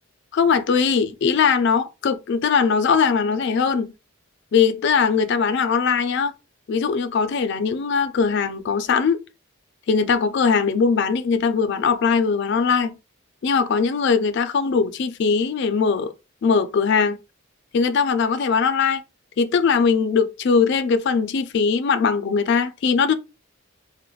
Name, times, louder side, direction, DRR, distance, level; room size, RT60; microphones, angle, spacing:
voice 1, 0.3-3.9 4.5-6.3 6.7-9.2 9.9-12.9 13.4-16.1 16.4-17.2 17.7-19.0 19.4-23.1, left 5 dB, 55° left, 0.3 m, -20 dB
2.3 x 2.1 x 3.0 m
head